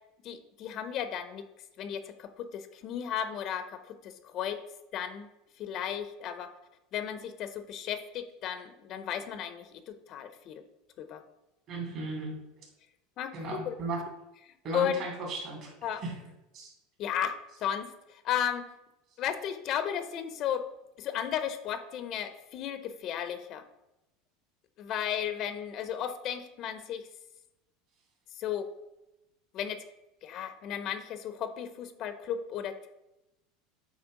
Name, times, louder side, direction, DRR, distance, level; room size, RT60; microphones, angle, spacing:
voice 1, 0.2-1.4 1.8-4.6 4.9-5.3 5.6-6.5 6.9-10.6 11.0-11.2 13.2-13.7 14.7-15.0 15.8-16.0 17.0-17.3 17.6-17.9 18.2-18.7 19.2-20.6 21.0-23.6 24.8-27.1 28.4-28.7 29.5-29.8 30.2-32.9, left 9 dB, 45° left, 10 dB, 0.6 m, -34 dB
voice 2, 11.7-12.4 13.3-14.0 14.6-15.7 16.0-16.2 16.5-16.7, right 3 dB, 45° right, -1 dB, 2.7 m, -36 dB
8.1 x 3.2 x 5.1 m, 0.92 s
supercardioid pair, 135°, 0 cm